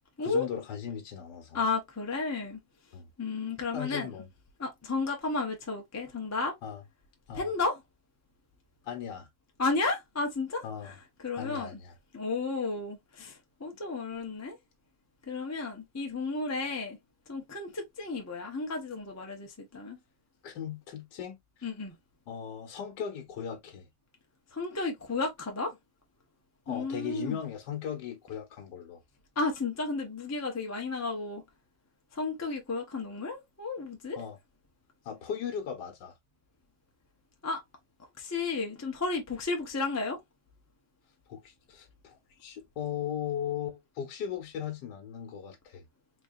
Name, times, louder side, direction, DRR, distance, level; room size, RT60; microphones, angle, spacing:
voice 1, 0.2-1.6 2.9-3.1 3.7-4.3 6.6-6.8 7.3-7.5 8.8-9.3 10.6-10.9 11.4-11.9 20.4-21.4 22.3-23.9 26.7-29.0 34.2-34.4 35.0-36.2 41.3-45.9, left 8 dB, 75° left, 1.5 m, -37 dB
voice 2, 1.5-2.6 3.2-4.1 4.6-6.6 7.3-7.8 9.6-11.8 12.1-14.6 15.3-17.0 17.3-20.0 21.6-21.9 24.5-25.8 26.7-27.4 29.4-31.4 32.1-34.2 37.4-37.6 38.2-40.2, left 3 dB, 15° left, 0.7 m, -33 dB
4.3 x 3.0 x 2.5 m
omnidirectional pair, 1.9 m